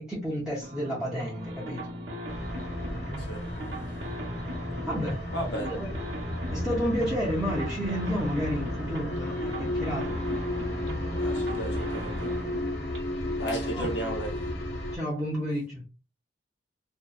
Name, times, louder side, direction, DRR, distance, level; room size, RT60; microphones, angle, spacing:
voice 1, 0.0-1.9 4.9-5.2 5.6-10.2 13.7-14.0 14.9-15.9, equal, 5° right, 0.5 m, -31 dB
sound 1, 0.6-14.7, equal, 85° right, 0.8 m, -38 dB
sound 2, 2.3-15.0, left 1 dB, 60° left, 0.5 m, -33 dB
voice 2, 5.3-5.8 11.2-12.3 13.4-14.3, equal, 80° left, 0.9 m, -34 dB
2.7 x 2.0 x 2.2 m
head